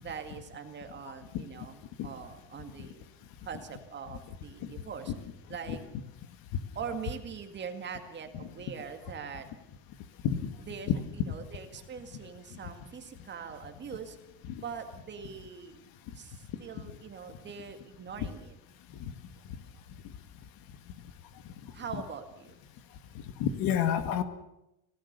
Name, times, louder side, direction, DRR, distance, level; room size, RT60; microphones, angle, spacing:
voice 1, 0.0-3.0 3.4-5.1 5.5-5.8 6.7-9.5 10.6-14.2 14.6-15.9 16.1-18.5 21.7-22.6, right 6 dB, 30° right, 7 dB, 2.1 m, -42 dB
voice 2, 23.4-24.2, left 9 dB, 65° left, 10 dB, 2.0 m, -28 dB
26.5 x 18.0 x 6.8 m, 0.88 s
cardioid pair, 175°, 38 cm